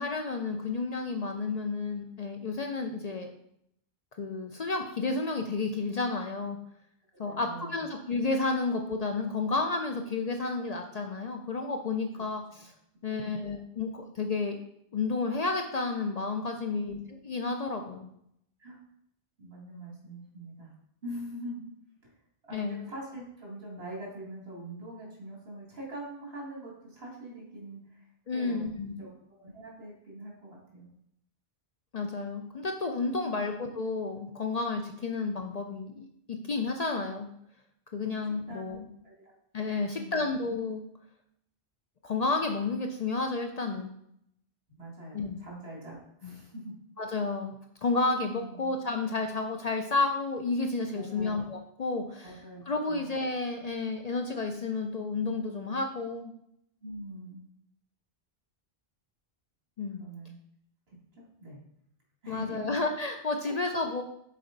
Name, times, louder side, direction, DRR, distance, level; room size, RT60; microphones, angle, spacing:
voice 1, 0.0-3.3 4.2-6.6 7.2-12.7 13.0-14.6 14.9-17.0 17.2-18.1 22.5-22.8 28.3-29.0 31.9-37.3 37.9-38.8 39.5-40.8 42.0-43.9 45.1-45.4 46.2-46.3 47.0-47.5 47.8-52.4 52.7-56.3 59.8-60.0 62.3-64.0, left 3 dB, 50° left, 4 dB, 0.5 m, -31 dB
voice 2, 7.2-7.8 13.1-13.5 16.6-17.0 18.6-18.8 19.4-20.7 21.0-21.6 22.0-22.1 22.5-28.1 28.3-30.9 33.3-33.5 38.5-38.7 39.0-39.3 39.8-40.2 44.8-46.7 48.3-48.7 50.9-51.4 52.2-53.1 56.8-57.4 60.0-60.4 60.9-61.0 61.4-61.6 62.2-62.7 63.4-63.5 63.8-63.9, right 1 dB, 75° right, -3 dB, 2.3 m, -43 dB
6.7 x 4.3 x 3.9 m, 0.73 s
omnidirectional pair, 1.0 m